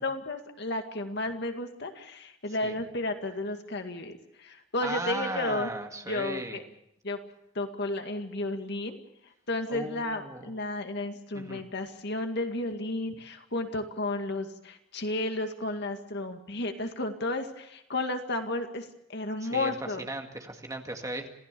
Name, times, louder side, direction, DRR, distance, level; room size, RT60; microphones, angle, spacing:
voice 1, 0.0-5.7 6.1-6.6 7.0-7.2 7.5-9.0 9.2-20.0, left 2 dB, 60° left, 5 dB, 2.2 m, -33 dB
voice 2, 4.8-6.6 9.7-10.5 11.3-11.6 19.4-19.7 20.0-21.3, right 2 dB, 15° right, 4 dB, 2.0 m, -36 dB
27.0 x 16.5 x 6.9 m, 0.81 s
head